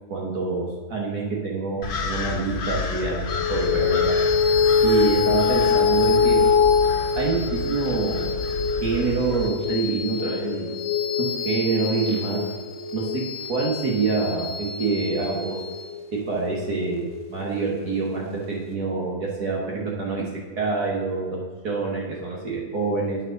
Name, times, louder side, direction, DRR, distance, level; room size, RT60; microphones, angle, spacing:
voice 1, 0.1-0.6 0.9-4.1 4.8-6.4 7.2-8.3 8.8-10.8 11.2-12.4 12.9-13.2 13.5-15.5 16.3-20.3 20.6-21.4 21.6-23.2, right 4 dB, 65° right, -3 dB, 1.9 m, -26 dB
sound 1, 1.8-9.5, left 3 dB, 65° left, 1.5 m, -31 dB
sound 2, 3.3-18.0, left 5 dB, 45° left, 1.4 m, -24 dB
9.1 x 5.3 x 6.5 m, 1.5 s
omnidirectional pair, 1.8 m